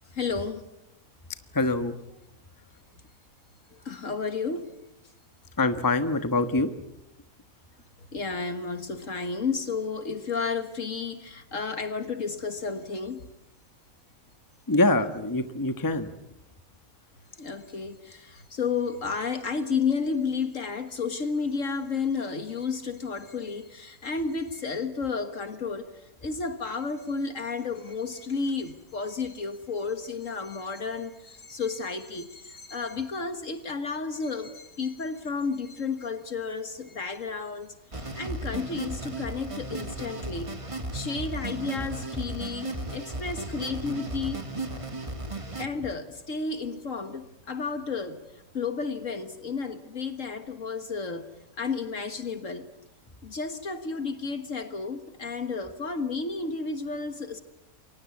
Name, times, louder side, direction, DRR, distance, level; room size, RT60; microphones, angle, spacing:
voice 1, 0.1-0.7 3.9-4.7 8.1-13.3 17.4-25.9 26.2-40.5 40.9-44.4 45.6-48.2 48.5-51.3 51.6-52.7 53.2-57.4, left 4 dB, 60° left, 1.8 m, -32 dB
voice 2, 1.5-1.9 5.6-6.7 14.7-16.1, left 2 dB, 15° left, 1.2 m, -24 dB
sound 1, 37.9-45.7, right 2 dB, 20° right, 2.0 m, -35 dB
29.0 x 23.0 x 8.4 m
omnidirectional pair, 1.5 m